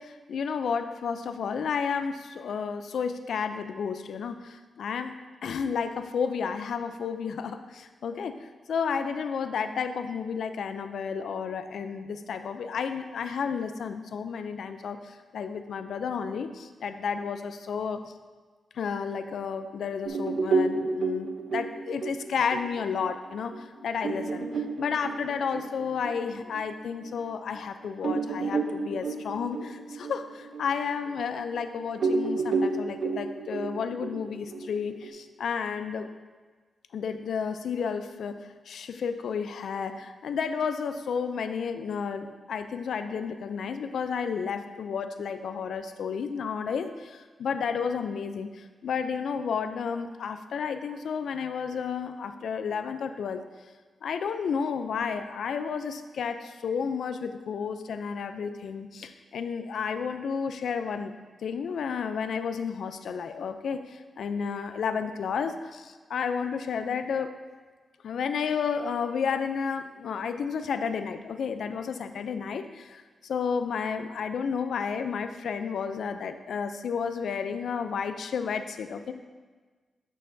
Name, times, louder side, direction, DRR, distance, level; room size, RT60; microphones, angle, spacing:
voice 1, 0.0-18.0 18.7-36.1 36.9-38.4 38.7-53.4 54.0-61.1 61.4-67.4 68.0-79.1, left 6 dB, 80° left, 9 dB, 0.4 m, -32 dB
sound 1, 20.0-27.1 27.5-27.6 28.0-31.6 32.0-35.1, right 3 dB, 65° right, 0.7 m, -31 dB
9.7 x 6.5 x 2.7 m, 1.4 s
cardioid pair, 85°, 0 cm